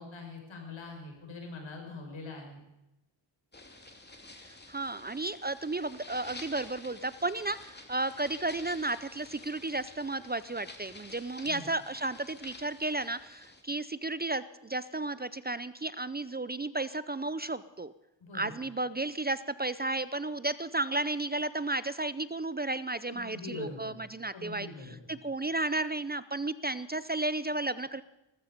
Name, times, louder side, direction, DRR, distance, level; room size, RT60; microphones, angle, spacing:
voice 1, 0.0-2.6 11.4-11.7 18.2-18.5 23.1-24.0 24.3-25.2, left 3 dB, 80° left, 3 dB, 5.9 m, -43 dB
sound 1, 3.5-13.6, left 2 dB, 20° left, 2.8 m, -50 dB
voice 2, 4.5-17.9 18.3-28.0, right 2 dB, 20° right, 15 dB, 0.5 m, -33 dB
19.0 x 14.5 x 5.2 m, 0.94 s
wide cardioid pair, 100°, 46 cm